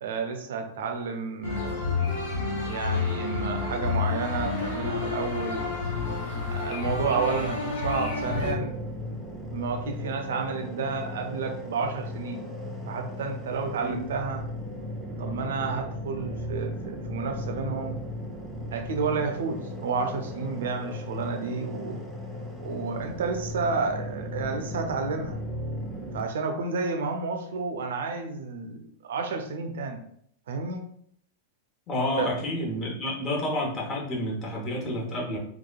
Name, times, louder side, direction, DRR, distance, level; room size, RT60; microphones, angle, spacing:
voice 1, 0.0-1.9 2.6-5.6 6.4-8.8 9.5-12.4 12.9-14.4 15.2-17.9 18.7-22.0 22.6-25.4 26.1-30.0 30.5-30.9 32.2-32.3, right 4 dB, 60° right, 5 dB, 0.4 m, -31 dB
sound 1, 1.4-8.5, left 4 dB, 55° left, 0.7 m, -29 dB
sound 2, 8.2-26.2, left 1 dB, 5° right, 0.5 m, -36 dB
voice 2, 31.9-35.4, left 1 dB, 30° left, -3 dB, 0.9 m, -29 dB
2.9 x 2.3 x 2.3 m, 0.67 s
figure-of-eight pair, 90°, 0 cm